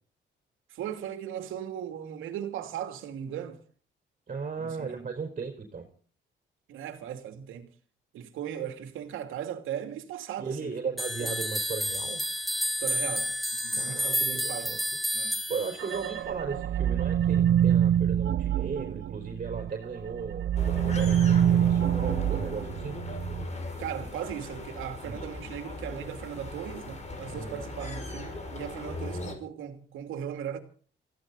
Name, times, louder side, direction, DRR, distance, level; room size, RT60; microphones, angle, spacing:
voice 1, 0.7-3.6 4.6-5.1 6.7-7.7 8.1-10.8 11.2-11.3 12.7-14.8 15.1-15.4 23.8-30.6, right 9 dB, 85° right, 2.8 m, -38 dB
voice 2, 4.3-5.9 10.4-12.2 13.7-14.8 15.1-23.0 25.0-25.2 27.3-27.6, right 5 dB, 40° right, 4.3 m, -36 dB
sound 1, 11.0-16.2, equal, ahead, 3.5 m, -30 dB
sound 2, 15.8-19.7 20.1-23.4, right 10 dB, 65° right, 0.9 m, -26 dB
sound 3, 20.6-29.3, left 2 dB, 35° left, 6.1 m, -38 dB
21.5 x 16.0 x 4.1 m
cardioid pair, 90°, 20 cm